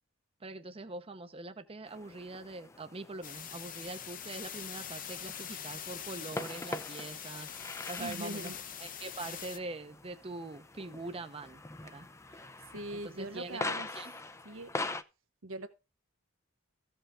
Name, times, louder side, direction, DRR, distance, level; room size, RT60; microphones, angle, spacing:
voice 1, 0.4-8.5 8.8-12.1 12.9-13.6 13.9-14.1, right 2 dB, 30° right, 0.8 m, -43 dB
sound 1, 1.9-15.0, left 2 dB, 15° left, 0.5 m, -44 dB
sound 2, 3.2-9.6, left 9 dB, 45° left, 0.8 m, -43 dB
voice 2, 8.0-8.6 12.3-12.4 12.7-13.9 14.4-14.7 15.4-15.7, right 1 dB, 85° right, 1.1 m, -41 dB
15.0 x 5.6 x 3.6 m
head